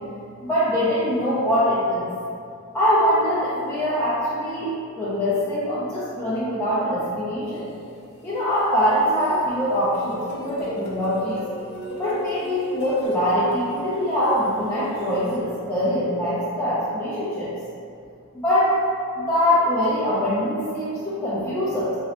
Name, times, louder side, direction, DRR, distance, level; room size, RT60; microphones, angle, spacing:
voice 1, 0.4-2.0 2.7-7.7 8.2-11.4 12.0-17.5 18.3-18.8 19.2-21.9, equal, 10° left, -13 dB, 0.6 m, -23 dB
sound 1, 7.5-9.4 9.7-15.4, left 1 dB, 50° left, 0.6 m, -37 dB
3.7 x 3.1 x 2.9 m, 2.4 s
head